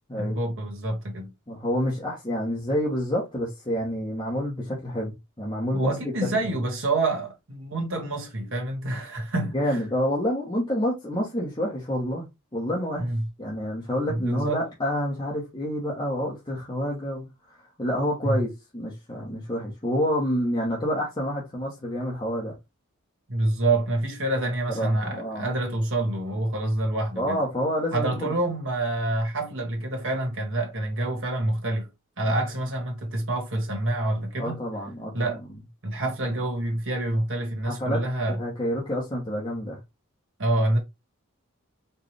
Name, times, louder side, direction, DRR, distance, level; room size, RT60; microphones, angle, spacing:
voice 1, 0.2-1.3 5.7-9.8 13.0-13.2 14.1-14.6 18.2-18.4 23.3-27.4 27.9-31.9 32.2-34.6 35.1-35.4 35.8-38.4 40.4-40.8, right 2 dB, 60° right, 1.4 m, -27 dB
voice 2, 1.5-6.4 9.5-12.3 12.5-13.1 13.4-22.5 24.7-25.5 27.1-28.3 34.4-35.3 36.0-36.1 37.6-38.0 38.3-39.8, equal, 20° left, 1.1 m, -28 dB
4.6 x 2.4 x 3.2 m
head